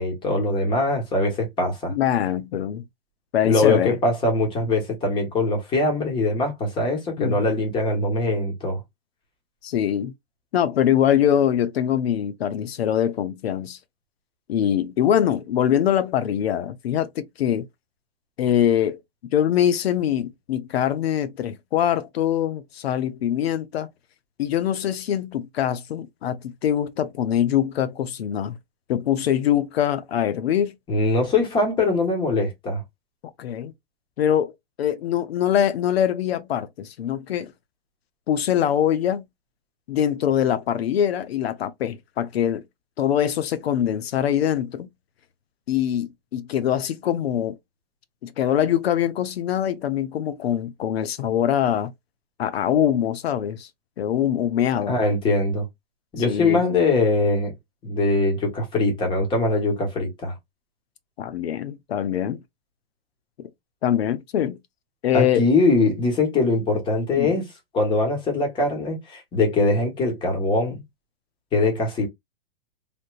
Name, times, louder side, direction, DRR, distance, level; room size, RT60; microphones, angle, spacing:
voice 1, 0.0-1.9 3.4-8.8 30.9-32.8 54.9-55.7 56.1-57.5 57.8-60.3 65.1-70.8 71.5-72.1, left 2 dB, 15° left, 1.3 m, -22 dB
voice 2, 1.9-2.8 3.3-4.0 7.2-7.4 9.6-10.1 10.5-13.8 14.5-17.7 18.4-19.0 19.3-23.9 24.4-28.6 28.9-30.8 33.4-33.7 34.2-34.5 34.8-37.5 38.3-39.2 39.9-42.6 43.0-44.9 45.7-47.6 48.2-51.9 52.4-53.7 54.0-55.0 56.3-56.6 61.2-62.4 63.8-64.6 65.0-65.5 67.2-67.3, left 10 dB, 85° left, 0.6 m, -23 dB
3.4 x 2.6 x 2.4 m
hypercardioid pair, 155°, 30 cm